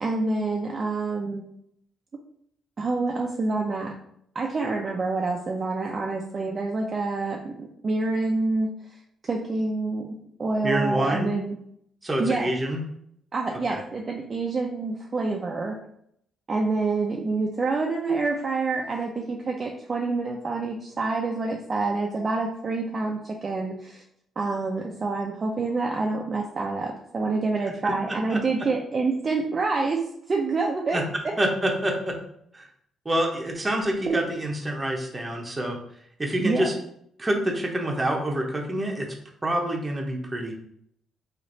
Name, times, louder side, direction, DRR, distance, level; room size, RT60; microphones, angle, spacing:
voice 1, 0.0-1.5 2.8-4.0 4.3-8.7 9.2-10.1 10.4-11.5 12.2-12.5 13.3-15.8 16.5-24.0 24.4-30.0 30.3-31.3 34.1-34.2 36.4-36.7, right 3 dB, 35° right, 0 dB, 0.4 m, -27 dB
voice 2, 10.6-11.4 12.0-12.8 13.7-13.8 27.8-27.9 28.3-28.4 30.9-31.0 31.4-32.1 32.5-32.7 33.0-35.8 36.2-36.7 37.2-39.1 39.4-40.6, right 1 dB, 20° right, 1 dB, 0.8 m, -27 dB
3.2 x 2.5 x 3.8 m, 0.70 s
cardioid pair, 90°, 0 cm